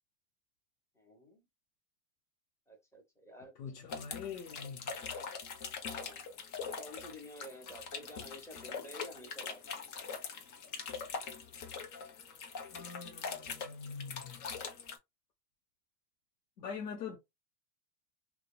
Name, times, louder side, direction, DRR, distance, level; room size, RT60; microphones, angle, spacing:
voice 1, 0.9-1.4 2.7-3.7 4.9-5.1 5.8-6.2 6.6-9.6, equal, 5° left, 1.1 m, -51 dB
voice 2, 3.6-5.0 12.7-14.4 16.6-17.2, left 6 dB, 85° left, 0.8 m, -44 dB
sound 1, 3.9-15.0, left 5 dB, 40° left, 0.9 m, -43 dB
2.7 x 2.2 x 2.3 m
hypercardioid pair, 105°, 48 cm